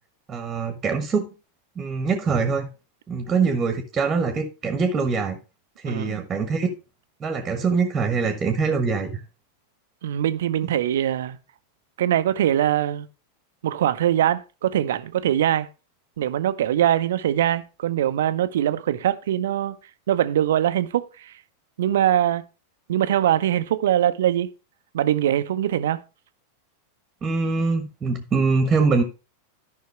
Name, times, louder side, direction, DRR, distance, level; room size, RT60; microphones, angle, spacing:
voice 1, 0.3-1.3 1.8-2.7 3.1-5.4 5.8-6.7 7.2-9.2 10.6-10.7 27.2-29.0, right 4 dB, 20° right, 1.3 m, -23 dB
voice 2, 5.9-6.2 10.0-11.4 12.0-13.1 13.6-15.7 16.2-19.7 20.1-21.3 21.8-22.4 22.9-24.5 24.9-26.0, right 11 dB, 60° right, 0.7 m, -22 dB
13.0 x 5.6 x 3.3 m
figure-of-eight pair, 90°, 0 cm